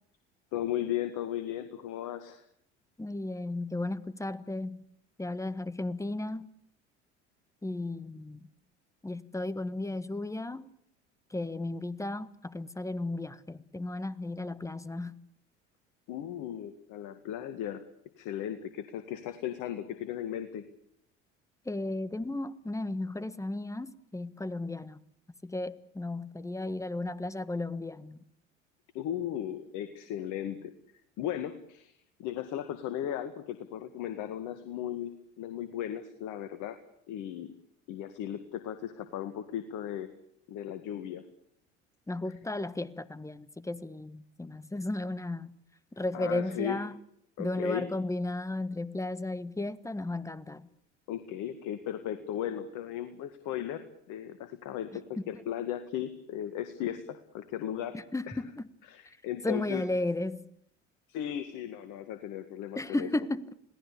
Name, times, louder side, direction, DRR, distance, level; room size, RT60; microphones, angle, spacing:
voice 1, 0.5-2.4 16.1-17.9 18.2-20.7 28.9-30.7 31.2-31.9 32.2-35.1 35.4-36.8 37.1-37.5 37.9-40.1 40.5-41.3 46.1-46.8 47.4-47.9 51.1-58.0 58.3-58.4 58.9-59.8 61.1-63.1, left 11 dB, 60° left, 2.1 m, -36 dB
voice 2, 3.0-4.8 5.2-6.5 7.6-8.5 9.0-10.7 11.3-15.2 21.6-25.0 25.4-28.2 42.1-45.5 45.9-47.0 47.4-50.7 57.9-58.7 59.4-60.5 62.7-63.5, left 2 dB, 10° left, 1.5 m, -34 dB
27.5 x 18.0 x 8.6 m
hypercardioid pair, 65°, 36 cm